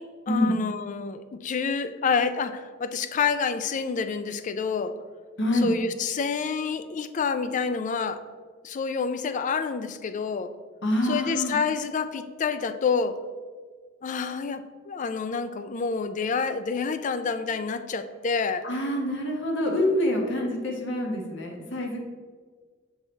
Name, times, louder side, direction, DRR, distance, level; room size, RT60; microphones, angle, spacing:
voice 1, 0.0-5.0 5.5-8.2 8.6-10.5 11.0-13.2 14.0-18.7, left 5 dB, 40° left, 11 dB, 0.3 m, -28 dB
voice 2, 5.4-5.7 10.8-11.6 18.6-22.0, left 1 dB, 60° left, 0 dB, 1.1 m, -26 dB
7.4 x 4.0 x 3.9 m, 1.5 s
head